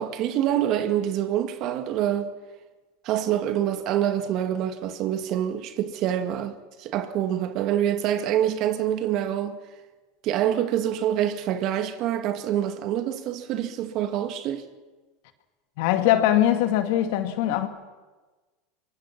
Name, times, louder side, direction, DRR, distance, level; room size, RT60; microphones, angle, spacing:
voice 1, 0.0-2.3 3.0-6.5 6.8-9.6 10.2-14.7, right 11 dB, 50° right, 2.0 m, -26 dB
voice 2, 15.8-17.7, left 12 dB, 65° left, 2.2 m, -21 dB
23.5 x 22.5 x 6.0 m
hypercardioid pair, 105°, 0 cm